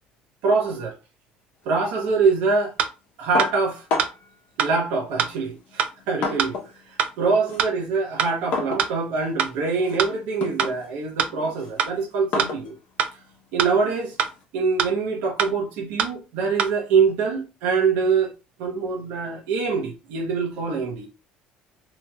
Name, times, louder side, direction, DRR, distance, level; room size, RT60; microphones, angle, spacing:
voice 1, 0.4-0.9 1.6-2.7 3.2-3.9 4.6-6.6 6.9-12.7 13.5-14.2 14.5-18.3 18.6-21.1, right 4 dB, 80° right, 0.8 m, -24 dB
sound 1, 2.8-2.9 3.4-3.5 4.0-4.1 4.6-4.7 5.2-5.3 5.8-5.9 6.4-6.5 7.0-7.1 7.6-7.7 8.2-8.3 8.8-8.9 9.4-9.5 10.0-10.1 10.6-10.7 11.2-11.3 11.8-11.9 12.4-12.5 13.0-13.1 13.6-13.7 14.2-14.3 14.8-14.9 15.4-15.5 16.0-16.1 16.6-16.7, right 8 dB, 50° right, 0.4 m, -22 dB
sound 2, 3.4-4.4 5.3-6.8 7.1-14.4, left 4 dB, 55° left, 0.8 m, -33 dB
2.9 x 2.9 x 2.3 m
cardioid pair, 160°, 3 cm